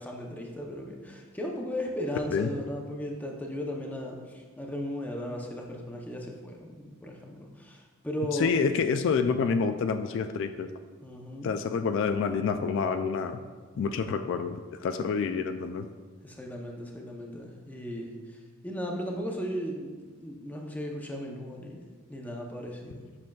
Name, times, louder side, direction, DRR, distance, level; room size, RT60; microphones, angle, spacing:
voice 1, 0.0-8.5 11.0-11.5 16.2-21.8 22.1-23.0, equal, 10° left, 0 dB, 0.7 m, -36 dB
voice 2, 8.3-10.7 11.4-13.4 13.8-15.9, left 5 dB, 65° left, 8 dB, 0.3 m, -28 dB
7.4 x 5.9 x 2.3 m, 1.5 s
head